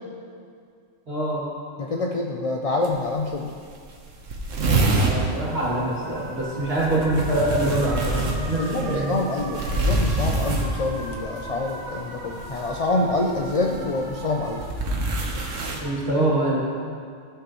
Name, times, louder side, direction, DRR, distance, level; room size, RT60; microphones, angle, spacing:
voice 1, 1.1-1.4 4.9-9.2 15.8-16.7, right 1 dB, 50° right, -7 dB, 2.7 m, -24 dB
voice 2, 1.8-3.5 8.6-14.6, left 2 dB, 55° left, 2 dB, 0.4 m, -26 dB
sound 1, 2.8-2.9 3.2-3.3 3.6-3.7 3.9-5.2 6.7-11.1 12.4-12.7 13.6-15.8, right 2 dB, 80° right, 1.4 m, -25 dB
sound 2, 5.9-14.6, right 1 dB, 30° right, 1.5 m, -38 dB
14.5 x 6.5 x 3.0 m, 2.2 s
omnidirectional pair, 1.3 m